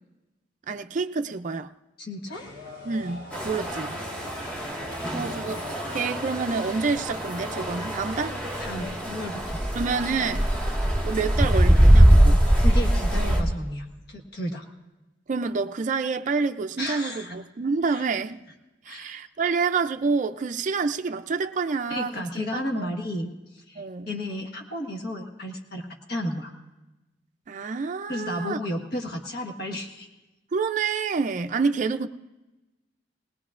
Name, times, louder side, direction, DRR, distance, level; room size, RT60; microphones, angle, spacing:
voice 1, 0.7-1.7 2.8-3.9 5.1-8.4 9.7-10.5 11.0-12.4 15.3-18.4 18.9-22.3 22.5-22.9 23.8-24.1 27.5-28.6 30.5-32.1, right 4 dB, 40° right, 0.4 m, -28 dB
voice 2, 2.0-2.4 3.9-4.1 8.6-9.6 12.6-14.6 16.8-17.4 17.9-18.0 18.9-19.1 21.9-26.5 28.1-30.1, left 1 dB, 55° left, 1.4 m, -33 dB
sound 1, 2.3-8.9, left 1 dB, 85° left, 3.0 m, -42 dB
sound 2, 3.3-13.4, right 1 dB, 5° left, 1.6 m, -22 dB
19.5 x 19.0 x 2.5 m
head